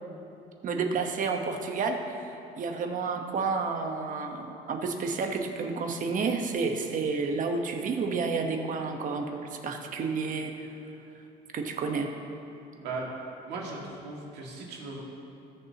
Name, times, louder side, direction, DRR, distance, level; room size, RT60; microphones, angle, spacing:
voice 1, 0.6-2.1 2.6-10.7 11.5-12.1, right 4 dB, 50° right, 4 dB, 1.2 m, -30 dB
voice 2, 12.8-13.1 13.5-15.0, right 3 dB, 85° right, -2 dB, 2.2 m, -37 dB
20.0 x 7.0 x 2.9 m, 2.7 s
cardioid pair, 110°, 17 cm